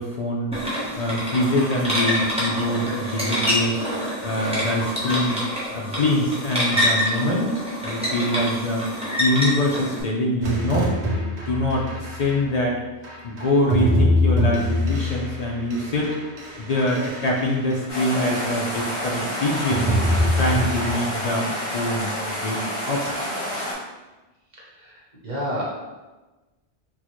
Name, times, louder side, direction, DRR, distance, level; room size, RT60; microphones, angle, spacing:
voice 1, 0.0-3.8 4.2-5.4 5.7-7.5 7.8-8.9 9.2-10.9 11.5-12.8 13.2-16.2 16.6-19.9 20.3-23.0, left 1 dB, 60° left, -2 dB, 0.4 m, -24 dB
sound 1, 0.5-10.0, equal, 5° right, 0.6 m, -26 dB
sound 2, 10.4-12.4 13.0-18.0 18.4-19.1 19.4-20.9, left 1 dB, 80° right, 1.0 m, -24 dB
sound 3, 17.9-23.7, equal, 80° left, 1.5 m, -29 dB
voice 2, 24.6-25.7, equal, 45° right, -5 dB, 1.0 m, -31 dB
4.4 x 2.1 x 2.9 m, 1.1 s
omnidirectional pair, 1.1 m